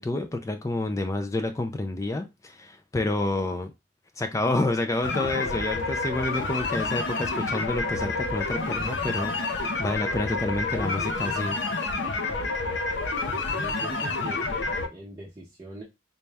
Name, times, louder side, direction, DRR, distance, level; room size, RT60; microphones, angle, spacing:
voice 1, 0.0-3.7 4.2-11.6, left 2 dB, 15° left, 0.3 m, -29 dB
sound 1, 5.0-14.9, left 3 dB, 70° left, 0.6 m, -29 dB
voice 2, 13.2-15.8, right 1 dB, 20° right, 0.7 m, -42 dB
4.0 x 2.3 x 3.3 m
head